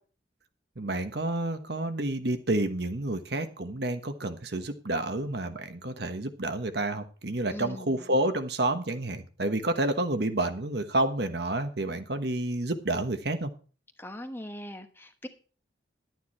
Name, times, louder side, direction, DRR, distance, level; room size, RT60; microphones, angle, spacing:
voice 1, 0.8-13.5, right 1 dB, 60° right, 8 dB, 1.3 m, -29 dB
voice 2, 7.5-8.1 14.0-15.3, equal, 10° left, 6 dB, 1.1 m, -41 dB
12.0 x 9.3 x 4.4 m, 0.38 s
head